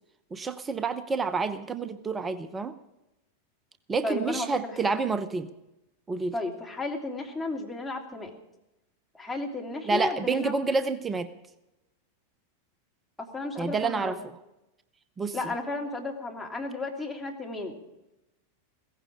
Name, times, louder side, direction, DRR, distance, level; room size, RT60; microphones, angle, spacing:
voice 1, 0.3-2.7 3.9-5.5 6.1-6.3 9.9-11.3 13.6-14.2 15.2-15.4, right 4 dB, 15° right, 13 dB, 0.8 m, -28 dB
voice 2, 4.0-4.8 6.3-8.3 9.1-10.5 13.2-14.1 15.3-17.8, left 2 dB, 5° left, -1 dB, 3.0 m, -34 dB
17.0 x 15.0 x 4.9 m, 0.94 s
figure-of-eight pair, 90°, 0 cm